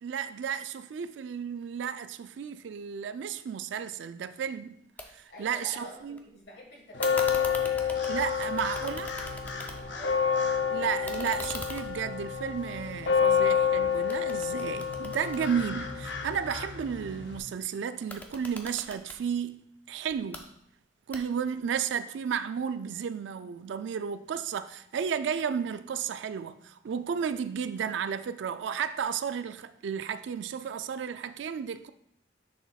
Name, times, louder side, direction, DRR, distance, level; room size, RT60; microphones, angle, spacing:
voice 1, 0.0-4.8 5.1-6.2 8.1-9.1 10.7-19.6 19.9-20.4 21.1-31.9, right 7 dB, 80° right, 0.3 m, -33 dB
sound 1, 5.0-5.1 5.4-6.2 7.0-10.1 10.4-13.7 14.1-16.3 17.9-19.2 20.1-20.4 21.1-21.6, left 1 dB, 10° left, 0.4 m, -43 dB
voice 2, 5.3-8.0 8.4-8.9 9.9-10.4, left 1 dB, 60° left, 1.6 m, -49 dB
sound 2, 6.9-17.4, left 7 dB, 80° left, 0.7 m, -29 dB
6.8 x 6.1 x 2.3 m
head